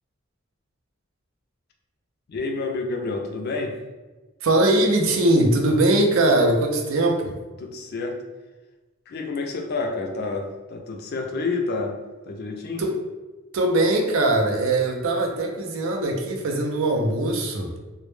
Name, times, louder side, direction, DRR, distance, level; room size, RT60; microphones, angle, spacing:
voice 1, 2.3-3.8 7.6-8.2 9.1-12.0 12.3-12.8, left 3 dB, 50° left, 2 dB, 0.3 m, -29 dB
voice 2, 4.4-7.4 12.8-13.0 13.5-17.7, right 1 dB, 90° right, 2 dB, 0.4 m, -21 dB
2.1 x 2.0 x 3.1 m, 1.2 s
head